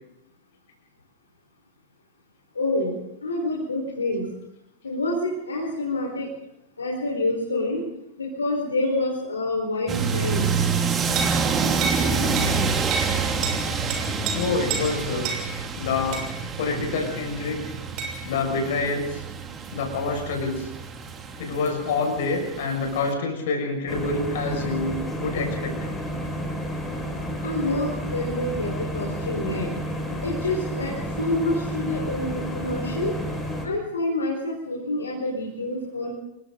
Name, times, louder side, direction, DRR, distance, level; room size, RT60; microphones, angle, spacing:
voice 1, 2.5-2.9 3.2-4.3 4.8-6.3 6.8-7.8 8.2-10.5 27.4-29.7 30.2-33.1 33.6-36.1, left 2 dB, 75° left, -1 dB, 4.9 m, -27 dB
sound 1, 9.9-23.1, right 5 dB, 20° right, 3.3 m, -27 dB
sound 2, 11.2-11.4 11.8-12.0 12.4-12.5 12.9-13.1 13.4-13.6 13.9-14.4 14.7-14.9 15.2-15.4 16.1-16.3 18.0-18.1, right 5 dB, 40° right, 6.7 m, -28 dB
voice 2, 14.3-15.3 15.8-17.6 18.2-19.2 19.7-20.7 21.4-25.9, left 3 dB, 55° left, 3 dB, 6.6 m, -27 dB
sound 3, 23.9-33.7, equal, 10° left, 6.2 m, -31 dB
29.0 x 23.0 x 4.0 m, 0.85 s
figure-of-eight pair, 90°, 0 cm